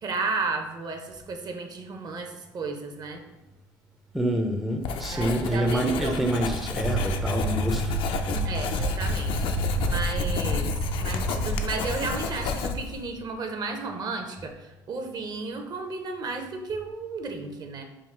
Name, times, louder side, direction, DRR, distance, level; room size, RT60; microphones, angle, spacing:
voice 1, 0.0-3.2 5.1-6.3 8.3-17.8, right 3 dB, 45° right, 4 dB, 0.6 m, -33 dB
voice 2, 4.1-8.0, right 1 dB, ahead, 2 dB, 0.4 m, -27 dB
Writing, 4.8-13.0, left 5 dB, 65° left, 0.4 m, -31 dB
sound 1, 6.8-13.3, right 2 dB, 90° right, 1.3 m, -30 dB
3.7 x 2.3 x 4.3 m, 0.96 s
cardioid pair, 100°, 10 cm